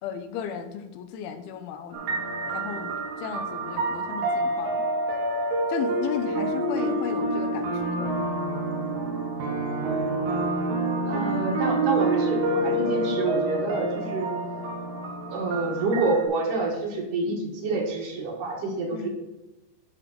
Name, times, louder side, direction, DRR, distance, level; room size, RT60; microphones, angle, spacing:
voice 1, 0.0-2.0 2.4-2.9 3.2-4.9 5.7-8.1 18.9-19.1, left 7 dB, 85° left, 8 dB, 2.5 m, -34 dB
sound 1, 1.9-16.2, right 2 dB, 80° right, 3.7 m, -28 dB
voice 2, 11.1-14.3 15.3-19.1, right 3 dB, 60° right, 0 dB, 2.6 m, -28 dB
8.6 x 5.0 x 6.6 m, 0.97 s
omnidirectional pair, 4.5 m